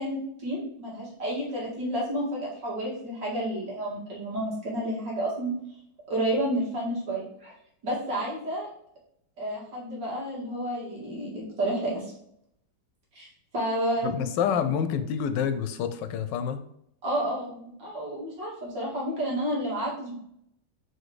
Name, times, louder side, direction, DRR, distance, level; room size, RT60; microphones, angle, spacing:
voice 1, 0.0-5.5 6.1-7.5 7.8-8.7 9.4-12.0 13.1-13.3 13.5-14.3 17.0-20.2, right 1 dB, 80° right, -5 dB, 2.7 m, -30 dB
voice 2, 14.0-16.6, left 8 dB, 80° left, 10 dB, 1.3 m, -28 dB
4.7 x 4.3 x 4.8 m, 0.72 s
omnidirectional pair, 1.9 m